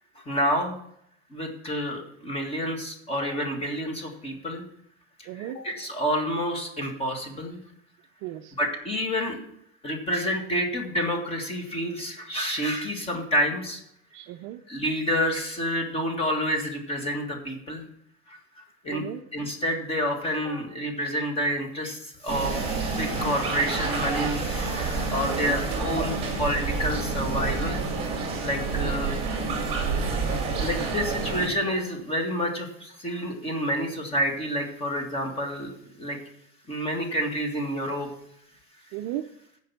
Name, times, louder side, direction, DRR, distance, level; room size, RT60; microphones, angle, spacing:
voice 1, 0.2-0.8 1.3-4.6 5.2-7.6 8.6-9.5 9.8-13.8 14.7-17.8 18.3-18.4 18.8-19.0 19.3-28.1 28.4-29.2 30.0-30.3 30.6-35.7 36.0-36.2 36.7-38.1, equal, 20° left, 3 dB, 2.0 m, -29 dB
voice 2, 5.3-5.6 8.2-8.5 14.1-14.6 18.9-19.2 25.3-25.6 28.8-28.9 38.9-39.2, right 13 dB, 40° right, 7 dB, 0.5 m, -35 dB
sound 1, 22.3-31.5, right 4 dB, 20° right, 2.7 m, -28 dB
14.5 x 5.2 x 5.7 m, 0.72 s
supercardioid pair, 150°, 32 cm